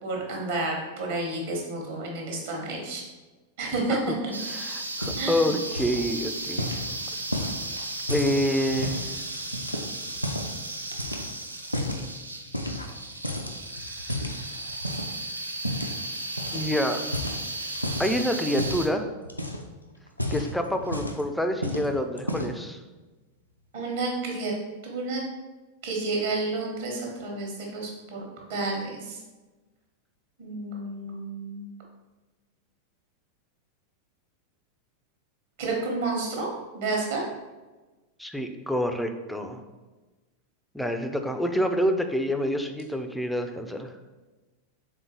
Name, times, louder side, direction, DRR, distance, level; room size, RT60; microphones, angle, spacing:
voice 1, 0.0-3.0 3.6-4.1 5.2-5.5 23.7-24.5 24.8-25.2 25.8-28.2 28.5-29.2 30.4-31.7 35.6-36.5 36.7-37.2, right 2 dB, 60° right, -1 dB, 1.0 m, -30 dB
sound 1, 4.3-18.9, right 2 dB, 80° right, 0.4 m, -35 dB
voice 2, 4.5-6.7 7.1-7.2 8.1-9.1 16.5-17.0 18.0-19.0 20.3-22.8 38.2-39.6 40.7-43.9, equal, 5° left, 6 dB, 0.3 m, -27 dB
sound 2, 5.0-5.4 5.7-6.1 6.6-9.1 9.5-10.6 10.9-12.1 12.5-13.0 13.2-15.1 15.6-16.0 16.4-16.7 17.0-18.1 18.6-18.9 19.3-19.7 20.1-21.3 21.6-21.9 22.2-22.7, left 1 dB, 90° left, 0.4 m, -32 dB
3.7 x 3.7 x 2.9 m, 1.2 s
figure-of-eight pair, 90°, 0 cm